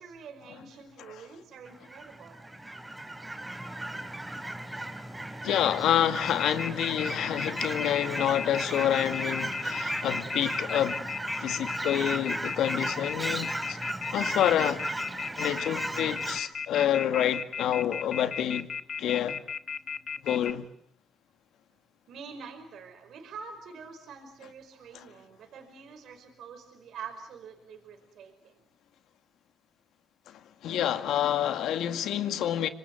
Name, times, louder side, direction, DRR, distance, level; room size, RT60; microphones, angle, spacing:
voice 1, 0.0-2.4 22.1-28.6, right 6 dB, 75° right, 5.1 m, -46 dB
Fowl / Chirp tweet, 1.7-16.4, right 1 dB, 10° right, 3.1 m, -36 dB
voice 2, 5.4-11.0 11.4-13.8 14.1-14.8 15.4-18.7 19.0-19.4 20.2-20.7 24.9-25.0 30.3-32.7, left 10 dB, 80° left, 2.0 m, -28 dB
Telephone, 6.2-20.5, left 6 dB, 50° left, 1.0 m, -35 dB
26.5 x 25.0 x 7.8 m
cardioid pair, 90°, 0 cm